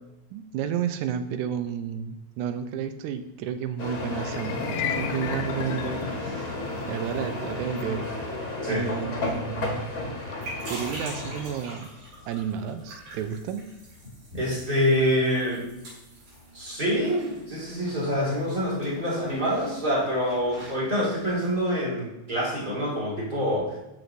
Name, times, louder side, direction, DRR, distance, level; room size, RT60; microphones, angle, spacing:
voice 1, 0.3-6.5 6.9-8.1 8.7-9.9 10.7-11.9 12.3-13.7, right 8 dB, 90° right, 10 dB, 2.0 m, -31 dB
sound 1, 3.8-11.5, left 2 dB, 40° left, 1.3 m, -33 dB
sound 2, 4.3-14.6, left 8 dB, 80° left, 1.8 m, -38 dB
sound 3, 10.0-21.6, right 1 dB, 65° right, 3.9 m, -45 dB
voice 2, 14.3-15.7 16.5-23.8, equal, 20° right, -6 dB, 1.9 m, -26 dB
12.5 x 4.6 x 2.6 m, 0.94 s
omnidirectional pair, 3.4 m